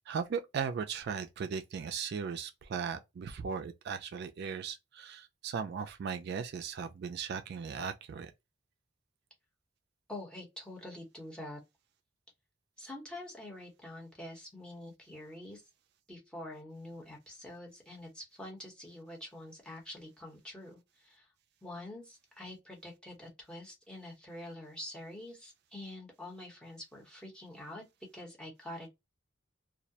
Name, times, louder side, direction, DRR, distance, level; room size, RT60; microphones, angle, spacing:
voice 1, 0.1-8.3, right 6 dB, 60° right, 0.3 m, -37 dB
voice 2, 10.1-11.6 12.8-15.6 16.1-21.3 21.6-27.8 28.1-28.9, left 1 dB, 5° left, 0.9 m, -46 dB
2.3 x 2.1 x 2.7 m
head